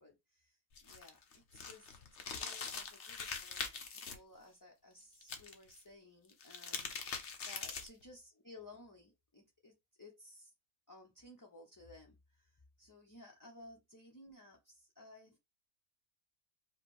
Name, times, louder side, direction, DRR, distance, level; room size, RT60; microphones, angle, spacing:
voice 1, 0.0-2.0 2.3-10.5 10.9-15.4, left 2 dB, 20° left, 0.7 m, -58 dB
sound 1, 0.7-4.1 5.2-5.8 6.3-8.0, left 5 dB, 60° left, 1.2 m, -43 dB
4.8 x 2.3 x 4.7 m
omnidirectional pair, 1.4 m